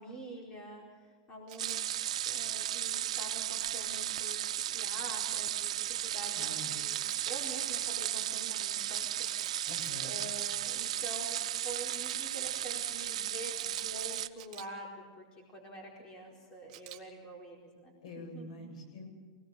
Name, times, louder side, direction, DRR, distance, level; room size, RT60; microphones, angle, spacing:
voice 1, 0.0-9.7 10.0-18.7, right 1 dB, 20° left, 0 dB, 4.5 m, -47 dB
Camera, 1.5-1.8 6.9-7.2 9.2-10.0 11.9-12.2 13.6-14.7 16.7-17.0, right 14 dB, 35° right, 2.0 m, -48 dB
sound 1, 1.6-14.3, right 12 dB, 85° right, 0.8 m, -35 dB
voice 2, 6.4-6.7 9.7-10.1 18.0-19.1, left 2 dB, 80° left, 5 dB, 7.8 m, -46 dB
25.5 x 19.0 x 6.9 m, 1.5 s
supercardioid pair, 165°, 3 cm